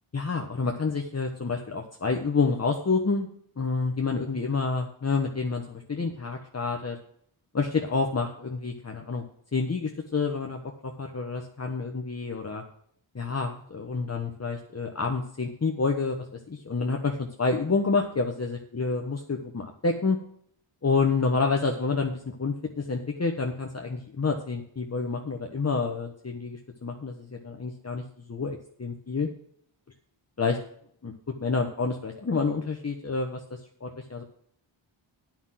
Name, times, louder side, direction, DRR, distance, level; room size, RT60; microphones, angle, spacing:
voice 1, 0.1-3.3 3.6-7.0 7.5-9.2 9.5-12.6 13.1-20.2 20.8-28.0 28.3-29.3 30.4-30.6 31.0-31.1 31.4-34.2, left 4 dB, 30° left, 2 dB, 1.2 m, -28 dB
9.2 x 5.9 x 7.5 m, 0.63 s
wide cardioid pair, 80°, 50 cm